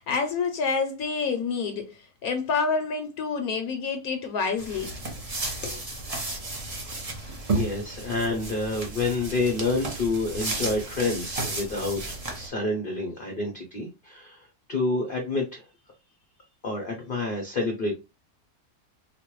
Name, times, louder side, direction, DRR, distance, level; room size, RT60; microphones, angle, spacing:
voice 1, 0.0-4.9 5.6-5.8, left 5 dB, 70° left, 1.0 m, -28 dB
sound 1, 4.6-12.5, right 2 dB, 40° right, 0.5 m, -33 dB
voice 2, 7.0-12.0 12.3-15.6 16.6-17.9, left 3 dB, 50° left, 0.6 m, -28 dB
4.0 x 2.2 x 3.0 m
omnidirectional pair, 1.7 m